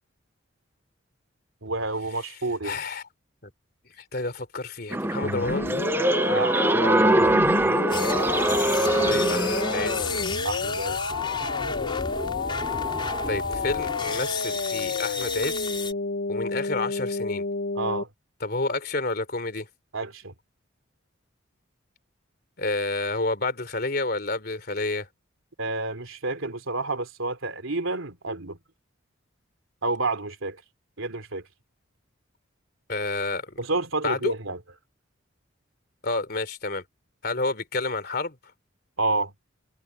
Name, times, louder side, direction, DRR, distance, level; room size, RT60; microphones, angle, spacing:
voice 1, 1.6-2.8 6.3-7.4 10.4-11.0 17.7-18.1 19.9-20.3 25.6-28.6 29.8-30.6 31.0-31.4 33.6-34.6 39.0-39.3, right 3 dB, 85° right, 3.0 m, -29 dB
voice 2, 2.6-3.0 3.4-3.5 4.0-5.7 9.0-10.4 13.3-15.7 16.3-17.4 18.4-19.7 22.6-25.1 32.9-33.6 34.0-34.3 36.0-36.8 37.2-38.4, left 3 dB, 50° left, 3.3 m, -29 dB
sound 1, 4.9-10.2, right 1 dB, 10° right, 0.6 m, -23 dB
sound 2, 5.2-18.0, left 4 dB, 70° left, 0.8 m, -30 dB
sound 3, 7.9-15.9, left 4 dB, 25° left, 4.2 m, -33 dB
head